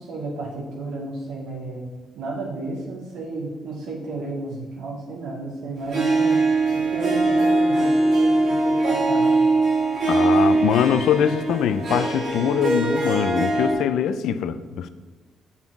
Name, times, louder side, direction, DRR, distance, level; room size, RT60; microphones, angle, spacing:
voice 1, 0.0-1.9 2.1-9.4, right 2 dB, 85° right, -4 dB, 2.2 m, -32 dB
Harp, 5.9-13.7, right 2 dB, 65° right, 2.2 m, -21 dB
voice 2, 10.1-14.9, left 8 dB, 80° left, 12 dB, 0.5 m, -22 dB
7.0 x 5.7 x 4.8 m, 1.3 s
cardioid pair, 90°, 0 cm